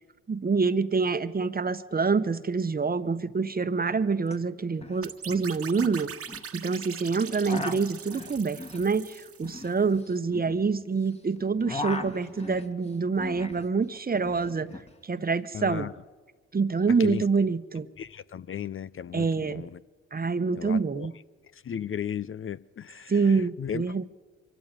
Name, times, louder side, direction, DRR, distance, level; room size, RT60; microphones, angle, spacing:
voice 1, 0.3-6.1 6.5-14.7 15.0-15.9 16.5-17.9 19.1-19.7 20.1-21.1 23.1-24.0, right 4 dB, 30° right, 1.1 m, -26 dB
sound 1, 4.3-4.4 4.6-5.0 5.3-6.5 7.2-11.1 11.4-13.7 13.9-14.9, left 2 dB, 20° left, 2.0 m, -38 dB
sound 2, 5.0-9.8, right 7 dB, 50° right, 1.3 m, -42 dB
voice 2, 15.5-15.9 17.0-17.2 18.0-19.7 20.6-21.1 21.7-23.1 23.6-23.8, left 8 dB, 45° left, 0.6 m, -35 dB
23.5 x 14.5 x 9.2 m
supercardioid pair, 60°, 30 cm